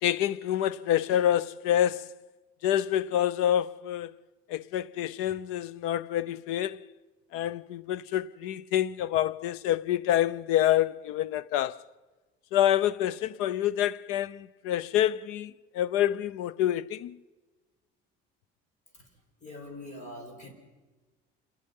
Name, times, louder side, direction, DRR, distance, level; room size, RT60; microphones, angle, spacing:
voice 1, 0.0-2.1 2.6-4.1 4.5-6.8 7.3-11.8 12.5-17.2, left 11 dB, 85° left, 0.7 m, -27 dB
voice 2, 19.4-20.5, left 1 dB, 35° left, 4.9 m, -43 dB
28.0 x 17.5 x 5.5 m
cardioid pair, 165°, 21 cm